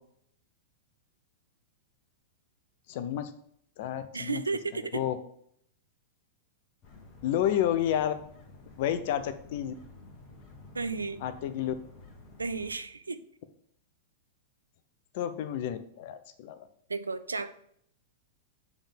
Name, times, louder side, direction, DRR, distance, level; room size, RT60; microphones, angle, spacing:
voice 1, 2.9-3.3 3.8-4.4 4.9-5.2 7.2-8.1 8.8-9.7 11.2-11.7 15.1-16.7, left 10 dB, 55° left, 12 dB, 0.6 m, -30 dB
voice 2, 4.1-5.0 10.7-11.2 12.4-13.2 16.9-17.5, right 4 dB, 85° right, 13 dB, 0.4 m, -33 dB
sound 1, 6.8-12.7, left 3 dB, 40° left, 1.5 m, -51 dB
7.1 x 3.6 x 5.3 m, 0.69 s
figure-of-eight pair, 100°, 0 cm